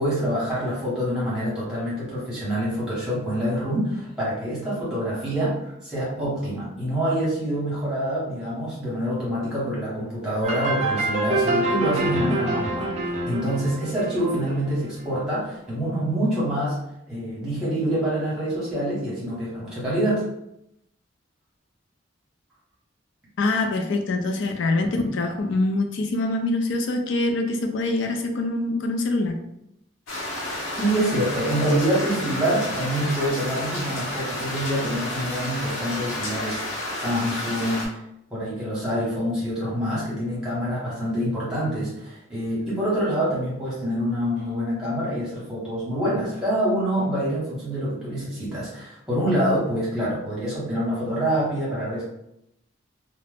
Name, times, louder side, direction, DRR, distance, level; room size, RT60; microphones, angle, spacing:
voice 1, 0.0-12.9 13.3-16.8 17.1-20.2 30.8-38.0 38.3-52.0, equal, 5° right, -9 dB, 1.1 m, -26 dB
sound 1, 10.4-15.0, right 2 dB, 35° right, 0.4 m, -26 dB
voice 2, 23.4-29.4, left 2 dB, 70° left, 4 dB, 0.4 m, -24 dB
sound 2, 30.1-37.9, left 1 dB, 90° left, 0.8 m, -31 dB
2.4 x 2.0 x 3.3 m, 0.82 s
head